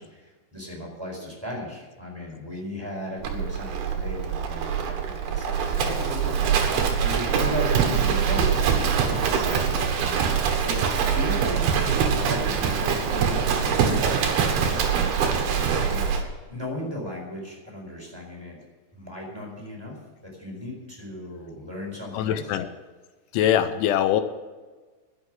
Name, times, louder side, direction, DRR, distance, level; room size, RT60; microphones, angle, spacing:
voice 1, 0.0-9.7 10.6-11.7 12.2-14.8 15.8-16.1 16.5-18.6 18.9-20.0 20.2-22.6, left 1 dB, 5° right, -1 dB, 3.9 m, -36 dB
Livestock farm animals working animals, 3.2-16.2, right 6 dB, 65° right, 3.2 m, -24 dB
voice 2, 22.1-22.7 23.3-24.2, left 10 dB, 85° left, 10 dB, 3.1 m, -22 dB
12.0 x 11.0 x 7.6 m, 1.3 s
omnidirectional pair, 5.4 m